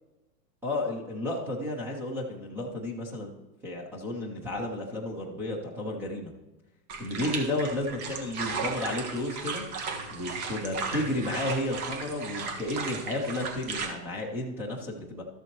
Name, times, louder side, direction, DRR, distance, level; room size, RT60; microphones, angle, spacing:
voice 1, 0.6-3.3 3.6-6.3 7.0-9.6 10.1-15.2, left 1 dB, 5° right, -2 dB, 0.3 m, -32 dB
sound 1, 6.9-13.9, right 4 dB, 60° right, 1.7 m, -35 dB
13.0 x 6.8 x 3.0 m, 1.1 s
hypercardioid pair, 130°, 49 cm